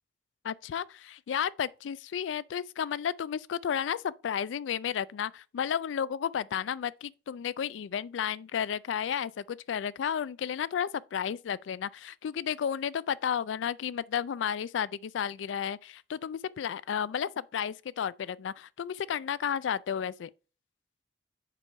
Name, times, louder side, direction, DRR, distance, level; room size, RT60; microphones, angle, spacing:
voice 1, 0.4-20.3, left 8 dB, 80° left, 0.3 m, -32 dB
6.8 x 4.5 x 4.7 m
head